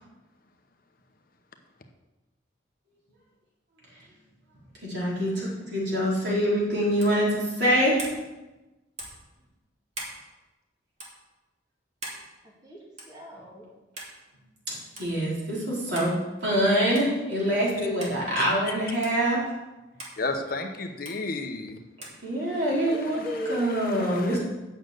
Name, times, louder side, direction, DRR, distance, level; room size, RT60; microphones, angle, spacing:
voice 1, 4.8-8.0 15.0-16.1 16.4-19.4 22.2-23.2 23.5-24.4, equal, 55° right, -6 dB, 4.1 m, -25 dB
sound 1, 7.0-7.2 8.0-8.2 9.0-9.2 9.9-10.2 11.0-11.1 12.0-12.2 13.0-13.2 14.0-14.1 15.0-15.1 15.9-16.2 16.9-17.2 18.0-18.2 19.0-19.2 20.0-20.2 21.0-21.2 22.0-22.2, right 2 dB, 35° right, 2.5 m, -39 dB
voice 2, 12.6-13.7 22.5-24.1, equal, 20° right, -3 dB, 2.1 m, -37 dB
voice 3, 20.2-21.8 23.2-23.3 23.9-24.4, left 3 dB, 50° left, 5 dB, 0.9 m, -32 dB
8.8 x 6.5 x 7.8 m, 1.1 s
head